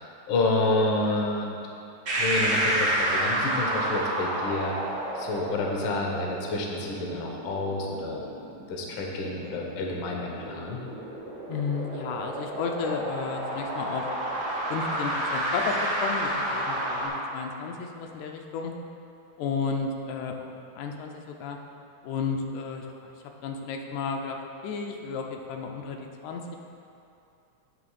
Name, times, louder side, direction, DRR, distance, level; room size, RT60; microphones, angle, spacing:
voice 1, 0.0-1.6 2.2-4.7 5.1-8.3 8.7-10.8, left 2 dB, 65° left, -1 dB, 1.2 m, -29 dB
sound 1, 2.1-17.1, right 1 dB, 55° right, 0.9 m, -30 dB
voice 2, 11.5-14.1 14.7-18.7 19.4-21.6 22.0-23.1 23.4-24.4 24.6-26.6, left 5 dB, 85° left, 3 dB, 2.0 m, -33 dB
9.1 x 3.2 x 6.3 m, 2.7 s
omnidirectional pair, 3.3 m